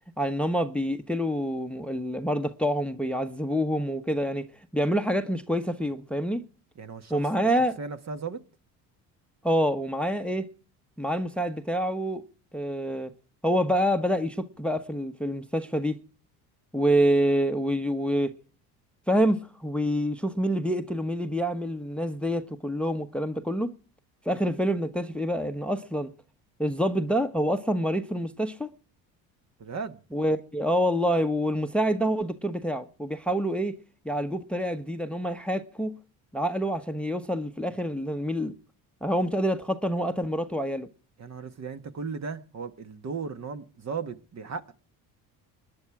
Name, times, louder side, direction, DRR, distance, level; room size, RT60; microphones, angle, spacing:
voice 1, 0.2-4.4 4.7-6.4 7.1-7.8 9.4-10.4 11.0-12.2 12.5-13.1 13.4-15.9 16.7-18.3 19.1-23.7 24.2-26.1 26.6-28.7 30.1-33.7 34.0-35.9 36.3-38.5 39.0-40.9, equal, 5° left, 1.0 m, -27 dB
voice 2, 6.7-7.2 7.8-8.4 29.6-30.0 41.2-44.7, right 5 dB, 40° right, 1.5 m, -36 dB
20.0 x 10.5 x 4.8 m
supercardioid pair, 80°, 43 cm